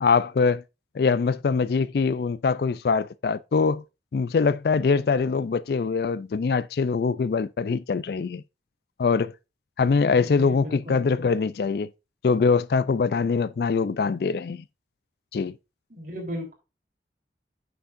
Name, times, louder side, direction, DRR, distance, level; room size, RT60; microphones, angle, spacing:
voice 1, 0.0-0.6 0.9-3.8 4.1-8.4 9.0-9.3 9.8-11.9 12.2-14.6 15.3-15.5, left 5 dB, 60° left, 0.4 m, -23 dB
voice 2, 10.1-11.3 15.9-16.5, equal, 50° right, 3.4 m, -37 dB
9.3 x 7.0 x 2.5 m
head